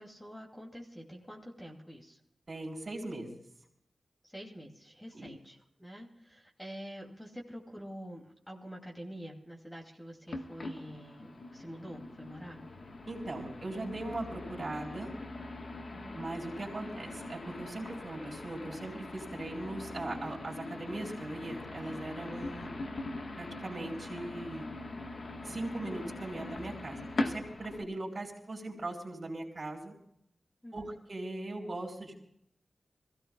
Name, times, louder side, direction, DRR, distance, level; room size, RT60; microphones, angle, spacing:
voice 1, 0.0-2.2 4.2-12.6 15.8-16.3 30.6-31.0, equal, 10° left, 0 dB, 2.7 m, -47 dB
voice 2, 2.5-3.4 5.1-5.3 13.1-15.1 16.1-22.7 23.4-24.7 25.4-29.9 30.7-32.1, right 2 dB, 45° right, -1 dB, 4.1 m, -40 dB
sound 1, 10.3-27.8, left 2 dB, 55° left, 1.4 m, -41 dB
25.5 x 16.5 x 2.4 m, 0.74 s
wide cardioid pair, 95°, 0 cm